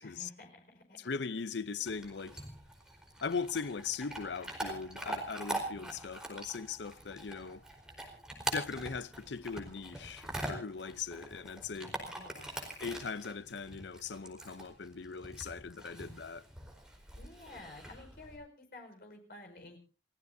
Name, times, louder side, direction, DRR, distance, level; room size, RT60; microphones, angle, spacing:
voice 1, 0.0-1.0 12.1-12.8 17.1-19.8, left 2 dB, 60° left, 5.0 m, -52 dB
voice 2, 1.0-2.4 3.2-7.6 8.4-12.0 12.8-16.4, left 5 dB, 85° left, 0.7 m, -39 dB
Chewing mastication / Dog, 1.9-18.4, right 1 dB, 5° right, 4.4 m, -43 dB
29.5 x 16.0 x 2.8 m
head